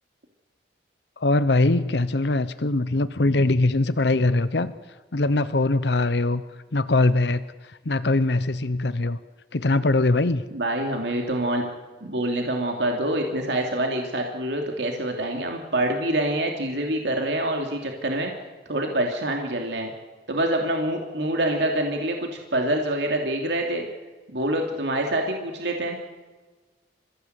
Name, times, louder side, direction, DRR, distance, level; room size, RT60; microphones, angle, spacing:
voice 1, 1.2-4.7 5.1-6.4 6.7-9.2 9.5-10.4, left 2 dB, 70° left, 13 dB, 0.8 m, -22 dB
voice 2, 10.5-11.6 12.0-18.3 18.7-19.9 20.3-23.9 24.3-26.0, right 1 dB, 70° right, 2 dB, 2.8 m, -26 dB
30.0 x 15.5 x 8.2 m, 1.3 s
head